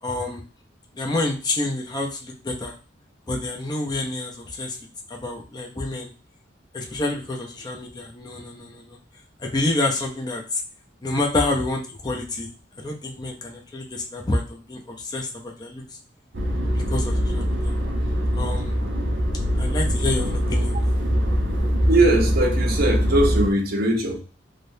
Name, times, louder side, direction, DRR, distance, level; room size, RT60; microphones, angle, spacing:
voice 1, 0.0-0.4 1.0-2.7 3.3-4.8 5.1-6.1 6.7-9.0 9.4-10.6 11.0-12.5 12.8-15.8 16.9-17.7 18.4-18.8 19.6-20.9, left 2 dB, 25° left, -1 dB, 0.6 m, -28 dB
sound 1, 16.3-23.5, equal, 90° right, 1.1 m, -23 dB
voice 2, 21.9-24.2, right 2 dB, 55° right, 0 dB, 0.9 m, -20 dB
3.4 x 2.4 x 2.6 m, 0.36 s
head